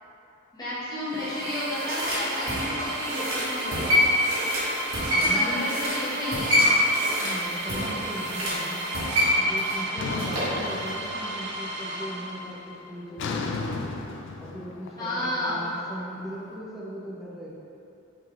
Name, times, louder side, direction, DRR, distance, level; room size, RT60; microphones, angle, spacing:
voice 1, 0.5-4.0 5.0-6.6 15.0-15.7, left 1 dB, 20° left, -12 dB, 1.0 m, -32 dB
sound 1, 0.9-12.8, right 1 dB, 55° right, 0.4 m, -34 dB
sound 2, 1.1-10.6 10.9-11.0, equal, 75° right, 1.3 m, -26 dB
voice 2, 5.1-5.7 7.1-8.8 9.4-13.9 14.4-17.5, equal, ahead, -7 dB, 0.6 m, -38 dB
sound 3, 10.0-11.5 11.9-12.3 13.2-16.2, left 3 dB, 60° left, 0.3 m, -34 dB
5.6 x 3.4 x 2.4 m, 2.8 s
head